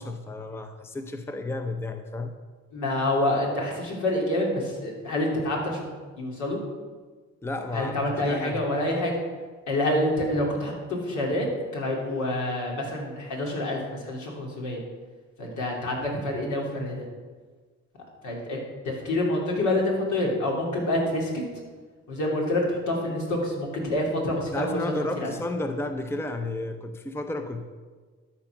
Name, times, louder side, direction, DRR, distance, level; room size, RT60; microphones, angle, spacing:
voice 1, 0.0-2.3 7.4-8.6 24.5-27.6, left 2 dB, 10° left, 7 dB, 0.6 m, -32 dB
voice 2, 2.7-5.9 6.2-6.6 7.7-9.1 9.7-11.5 11.7-14.8 15.4-17.1 18.2-18.6 18.8-21.3 22.1-25.3, left 1 dB, 75° left, -2 dB, 2.9 m, -27 dB
12.5 x 4.4 x 5.9 m, 1.4 s
cardioid pair, 90°, 30 cm